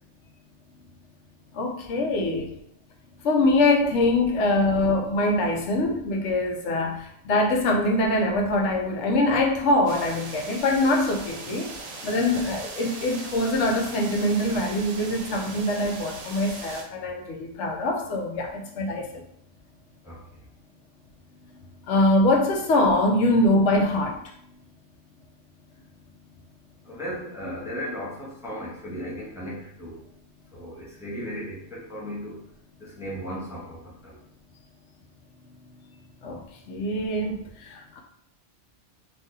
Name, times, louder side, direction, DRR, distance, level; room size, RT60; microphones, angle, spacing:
voice 1, 1.5-2.5 3.2-11.7 12.0-19.2 21.9-24.2 36.2-36.4 36.7-38.0, left 1 dB, 75° left, 1 dB, 0.9 m, -23 dB
sound 1, 9.9-16.8, right 3 dB, 55° right, 0.4 m, -39 dB
voice 2, 26.8-30.0 30.5-32.4 32.8-34.2, equal, 5° right, -6 dB, 0.6 m, -36 dB
2.7 x 2.6 x 3.6 m, 0.70 s
omnidirectional pair, 1.2 m